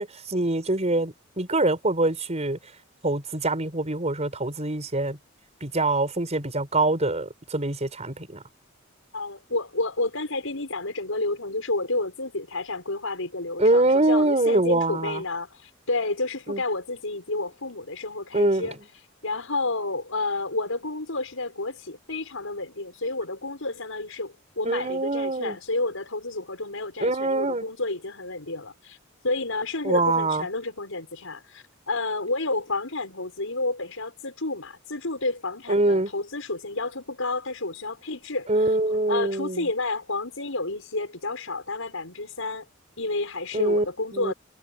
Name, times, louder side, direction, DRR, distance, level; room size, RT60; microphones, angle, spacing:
voice 1, 0.0-2.6 3.0-5.2 5.6-8.4 13.6-15.2 16.5-16.6 18.3-18.8 24.6-25.6 27.0-27.6 29.8-30.5 35.7-36.1 38.5-39.7 43.5-43.9 44.1-44.3, right 2 dB, 35° right, 5.0 m, -24 dB
voice 2, 9.1-18.8 19.2-29.0 29.2-38.7 39.1-42.7 43.0-44.3, left 2 dB, 80° left, 6.5 m, -30 dB
head